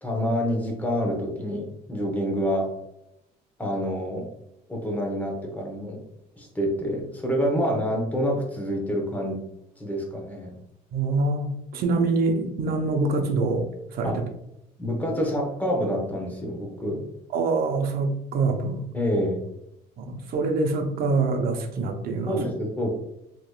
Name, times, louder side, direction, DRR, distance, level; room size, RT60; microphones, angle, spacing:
voice 1, 0.0-2.7 3.6-4.2 4.7-6.0 6.4-9.4 9.8-10.5 14.0-14.3 14.8-17.1 18.9-19.5 22.3-22.9, equal, 10° left, 1 dB, 1.0 m, -27 dB
voice 2, 10.9-13.7 13.9-14.1 17.3-18.8 20.0-22.4, right 3 dB, 60° right, 4 dB, 0.7 m, -25 dB
3.4 x 3.0 x 2.3 m, 0.81 s
cardioid pair, 110°, 17 cm